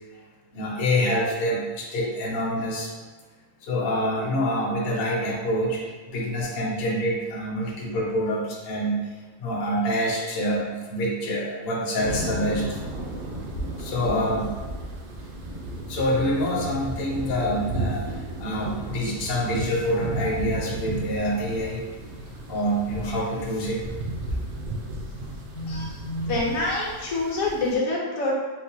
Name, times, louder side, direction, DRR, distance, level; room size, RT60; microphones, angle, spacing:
voice 1, 0.5-2.9 3.6-9.1 9.4-12.8 13.8-14.5 15.9-21.8 22.5-23.8 25.5-26.4, equal, 55° left, -3 dB, 0.8 m, -26 dB
sound 1, 12.0-27.8, right 1 dB, 75° right, 0.5 m, -34 dB
voice 2, 26.3-28.3, left 2 dB, 75° left, -3 dB, 1.2 m, -26 dB
4.6 x 2.1 x 2.7 m, 1.4 s
omnidirectional pair, 1.5 m